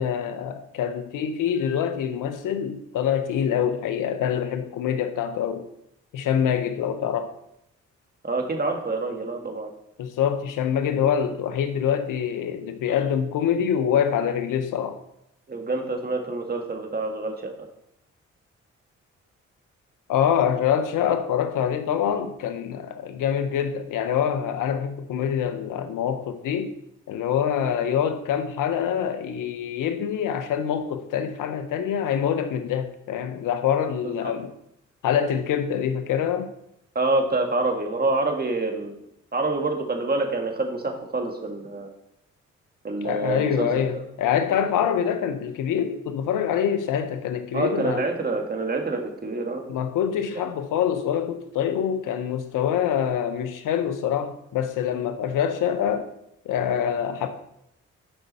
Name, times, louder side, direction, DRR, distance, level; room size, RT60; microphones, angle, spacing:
voice 1, 0.0-5.7 6.1-7.3 10.0-15.0 20.1-26.7 27.1-34.5 35.0-36.5 43.0-48.0 49.7-56.1 56.5-57.3, left 8 dB, 85° left, 9 dB, 0.9 m, -25 dB
voice 2, 8.2-9.7 15.5-17.7 34.0-34.3 37.0-39.0 39.3-41.9 42.8-44.0 47.5-49.6, right 2 dB, 30° right, 3 dB, 2.0 m, -27 dB
11.5 x 5.4 x 4.2 m, 0.78 s
supercardioid pair, 50°, 31 cm